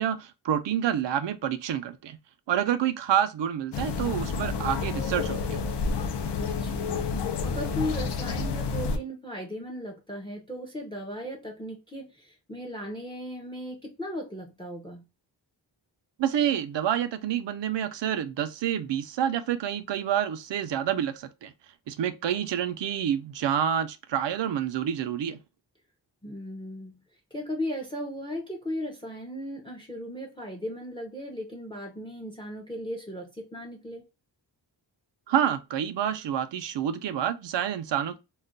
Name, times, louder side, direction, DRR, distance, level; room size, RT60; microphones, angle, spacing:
voice 1, 0.0-2.2 2.5-5.6 16.2-21.5 21.9-25.4 35.3-38.2, right 9 dB, 75° right, 0.5 m, -28 dB
sound 1, 3.7-9.0, left 5 dB, 65° left, 0.5 m, -29 dB
voice 2, 6.4-15.1 26.2-27.0 27.3-34.1, equal, 10° left, 0.5 m, -37 dB
2.4 x 2.1 x 3.7 m
wide cardioid pair, 180°, 44 cm